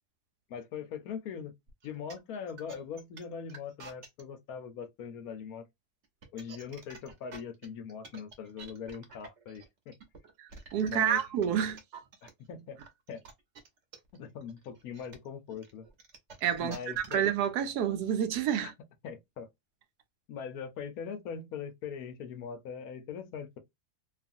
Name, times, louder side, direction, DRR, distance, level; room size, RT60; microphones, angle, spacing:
voice 1, 0.5-1.5 1.8-5.6 6.3-9.9 10.9-11.2 12.5-12.8 13.1-13.2 14.1-15.9 16.6-17.2 18.6-18.7 19.0-19.5 20.3-23.6, left 7 dB, 70° left, 1.1 m, -41 dB
sound 1, 1.7-4.2 6.0-12.3 12.8-17.4, right 4 dB, 50° right, 1.0 m, -50 dB
voice 2, 10.4-11.8 16.4-16.8 17.1-18.7, right 9 dB, 80° right, 1.2 m, -29 dB
2.9 x 2.4 x 2.5 m
omnidirectional pair, 1.7 m